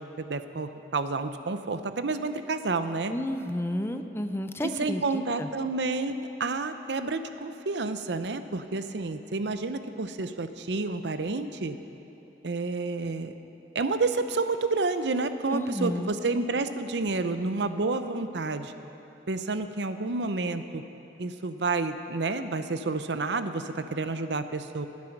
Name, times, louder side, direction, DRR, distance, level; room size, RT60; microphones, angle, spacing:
voice 1, 0.0-3.1 4.6-11.8 12.4-13.3 13.7-18.7 19.3-20.8 21.2-24.9, right 3 dB, 80° right, 10 dB, 0.7 m, -30 dB
voice 2, 3.1-5.5 15.5-16.1, left 1 dB, 15° left, 8 dB, 0.6 m, -31 dB
18.5 x 10.5 x 5.9 m, 2.9 s
head